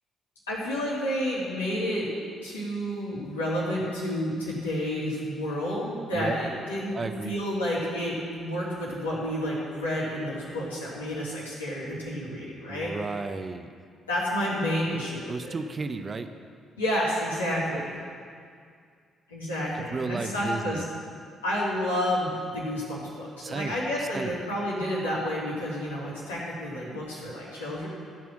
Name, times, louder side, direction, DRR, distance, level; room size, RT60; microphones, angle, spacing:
voice 1, 0.5-2.1 2.4-12.9 14.1-15.5 16.8-18.0 19.3-20.8 21.4-27.9, equal, 80° left, -8 dB, 2.9 m, -30 dB
voice 2, 6.9-7.3 12.7-13.7 15.3-16.3 19.7-20.8 23.4-24.3, right 4 dB, 35° right, 8 dB, 0.8 m, -33 dB
14.5 x 6.0 x 7.5 m, 2.2 s
figure-of-eight pair, 45°, 0 cm